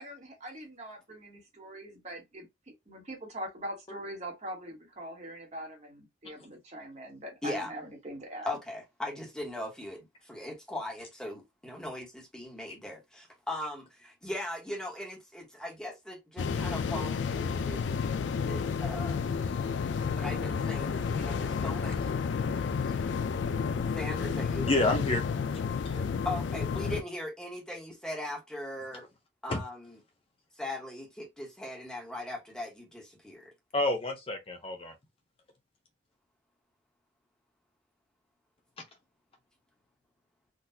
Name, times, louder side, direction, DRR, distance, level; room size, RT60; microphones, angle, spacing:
voice 1, 0.0-2.5 2.9-8.5, right 1 dB, 40° right, 1.3 m, -42 dB
voice 2, 8.5-17.8 18.4-19.2 20.1-22.1 23.9-24.7 25.9-29.0 29.4-29.9 30.5-33.5, left 1 dB, 5° left, 1.2 m, -39 dB
sound 1, 16.4-27.0, left 5 dB, 85° left, 0.4 m, -31 dB
voice 3, 22.5-22.9 24.6-25.2 25.8-26.0 29.5-29.6 33.7-34.9, left 2 dB, 30° left, 0.6 m, -30 dB
3.9 x 2.4 x 2.7 m
head